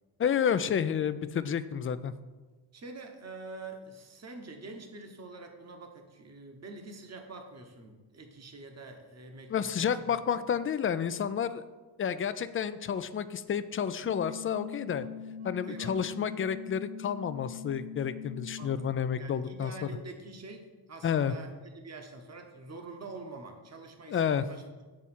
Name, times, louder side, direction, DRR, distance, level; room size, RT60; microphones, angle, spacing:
voice 1, 0.2-2.1 9.5-11.6 12.0-15.1 15.4-19.7 21.0-21.3 24.1-24.4, left 8 dB, 30° left, 13 dB, 0.4 m, -30 dB
voice 2, 2.7-10.2 15.7-16.1 18.6-24.6, right 3 dB, 35° right, 4 dB, 1.1 m, -46 dB
sound 1, 14.0-19.0, left 7 dB, 55° right, 1.9 m, -42 dB
8.7 x 3.5 x 4.3 m, 1.3 s
supercardioid pair, 55°, 47 cm